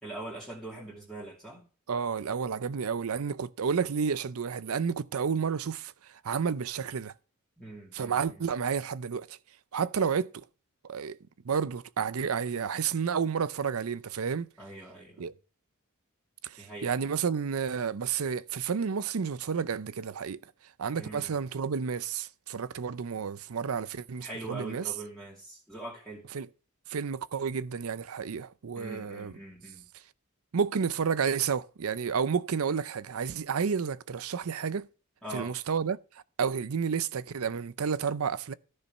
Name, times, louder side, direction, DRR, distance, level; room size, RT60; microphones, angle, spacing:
voice 1, 0.0-1.6 7.6-8.4 14.6-15.3 16.6-16.9 21.0-21.3 24.2-26.2 28.7-29.9 35.2-35.5, right 2 dB, 5° left, 2.5 m, -42 dB
voice 2, 1.9-5.9 6.2-7.1 7.9-9.4 9.7-10.4 10.9-11.2 11.5-14.5 15.2-15.3 16.4-20.4 20.8-24.8 26.3-26.5 26.9-29.3 30.5-34.9 35.3-36.0 36.4-38.5, right 6 dB, 85° right, 0.6 m, -31 dB
13.5 x 5.5 x 5.5 m
head